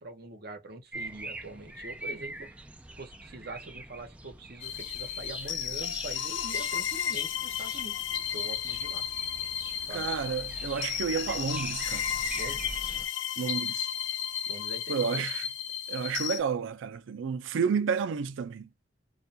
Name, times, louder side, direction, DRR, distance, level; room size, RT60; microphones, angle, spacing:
voice 1, 0.0-2.6 3.0-8.0 8.3-9.0 9.9-10.1 12.3-12.8 14.5-15.3, right 2 dB, 55° right, 0.8 m, -44 dB
sound 1, 0.9-13.1, right 2 dB, 5° right, 0.3 m, -43 dB
sound 2, 4.6-16.4, left 9 dB, 75° left, 0.5 m, -33 dB
voice 2, 9.9-12.1 13.4-13.9 14.9-15.5 15.9-18.7, right 6 dB, 80° right, 0.4 m, -31 dB
2.3 x 2.2 x 2.7 m
head